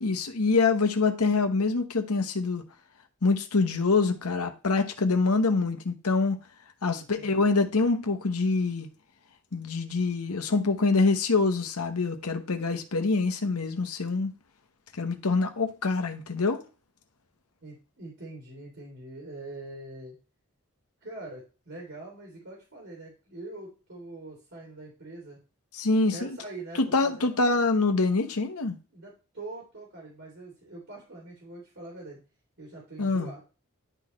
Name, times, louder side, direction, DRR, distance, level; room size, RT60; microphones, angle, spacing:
voice 1, 0.0-2.6 3.2-6.4 6.8-8.9 9.5-14.3 14.9-16.6 25.7-26.4 26.8-28.8 33.0-33.3, left 3 dB, 85° left, 1.1 m, -25 dB
voice 2, 6.9-7.3 17.6-20.2 21.0-25.4 26.1-27.4 28.9-32.2 32.6-33.4, right 2 dB, 60° right, 3.1 m, -43 dB
11.5 x 4.1 x 3.1 m
head